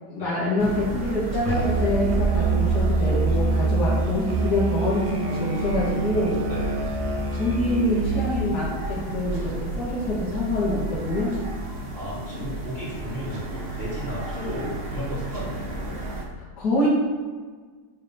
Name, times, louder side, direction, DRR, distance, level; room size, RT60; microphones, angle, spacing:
voice 1, 0.1-6.4 7.4-11.4 16.6-16.9, left 1 dB, 65° left, -8 dB, 2.3 m, -26 dB
sound 1, 0.6-16.2, right 1 dB, 40° right, 1.1 m, -32 dB
Musical instrument, 1.4-8.5, right 3 dB, 60° right, 0.3 m, -25 dB
voice 2, 6.5-6.8 11.9-16.0, equal, 30° left, -7 dB, 3.1 m, -34 dB
8.7 x 3.7 x 6.7 m, 1.5 s
omnidirectional pair, 1.9 m